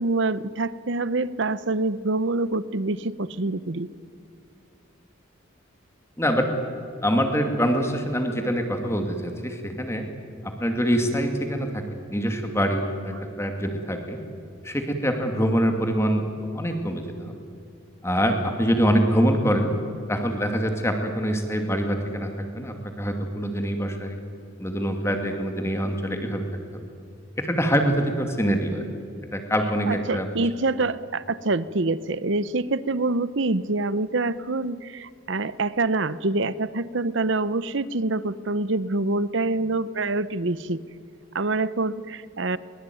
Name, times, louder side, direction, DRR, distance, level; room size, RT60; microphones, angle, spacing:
voice 1, 0.0-3.9 29.9-40.8 41.3-42.6, right 2 dB, 60° right, 17 dB, 0.8 m, -26 dB
voice 2, 7.0-10.1 10.4-11.8 12.1-14.2 14.6-16.3 16.5-17.3 18.0-19.7 20.1-24.2 24.6-26.4 27.4-28.9 29.3-30.3, equal, 15° left, 4 dB, 2.4 m, -24 dB
23.0 x 22.0 x 9.4 m, 2.5 s
head